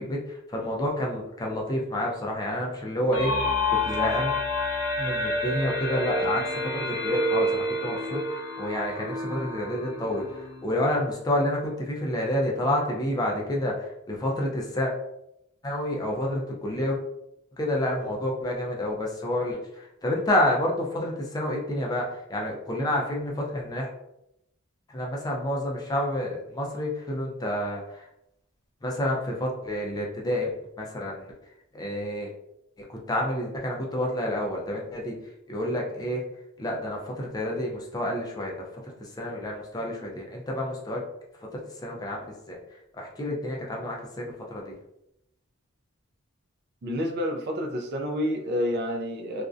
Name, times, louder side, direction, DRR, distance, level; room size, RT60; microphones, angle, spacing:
voice 1, 0.0-4.3 5.0-8.2 8.6-14.9 15.6-17.0 17.6-23.9 24.9-28.0 28.8-30.5 30.8-31.3 31.7-32.3 32.9-35.1 35.5-36.2 36.6-41.0 41.5-42.6 42.9-44.8, left 1 dB, 20° left, -1 dB, 0.4 m, -29 dB
sound 1, 3.1-10.7, left 1 dB, 90° left, 0.4 m, -28 dB
voice 2, 46.8-49.4, equal, 50° right, 3 dB, 0.4 m, -29 dB
2.4 x 2.1 x 2.4 m, 0.81 s
head